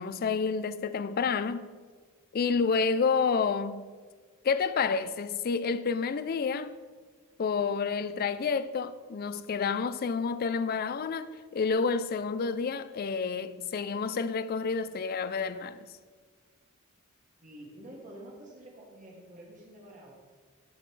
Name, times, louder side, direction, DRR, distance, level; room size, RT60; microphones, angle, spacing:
voice 1, 0.0-1.7 2.3-3.9 4.4-6.8 7.4-15.9, left 5 dB, 45° left, 0.4 m, -29 dB
voice 2, 17.4-20.1, right 1 dB, 35° right, 1.7 m, -48 dB
14.0 x 5.4 x 3.2 m
head